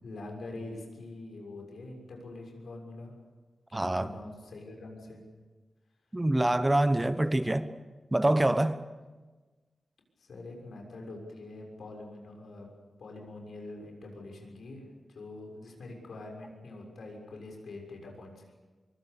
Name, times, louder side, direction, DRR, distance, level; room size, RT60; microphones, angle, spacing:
voice 1, 0.0-3.1 3.7-5.2 10.2-12.7 13.0-18.6, left 2 dB, 90° left, 1 dB, 6.6 m, -44 dB
voice 2, 3.7-4.1 6.1-7.7 8.1-8.8, right 1 dB, 15° right, 11 dB, 1.1 m, -25 dB
24.5 x 24.0 x 7.0 m, 1.3 s
wide cardioid pair, 105°, 0 cm